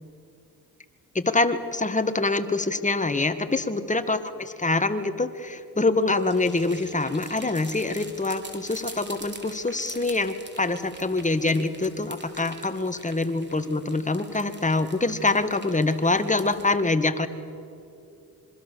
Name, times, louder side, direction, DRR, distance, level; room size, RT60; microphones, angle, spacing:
voice 1, 1.2-17.3, left 2 dB, 20° left, 9 dB, 1.8 m, -25 dB
sound 1, 6.0-16.7, right 2 dB, 30° right, 4.4 m, -45 dB
26.5 x 22.5 x 7.0 m, 2.7 s
supercardioid pair, 50°, 38 cm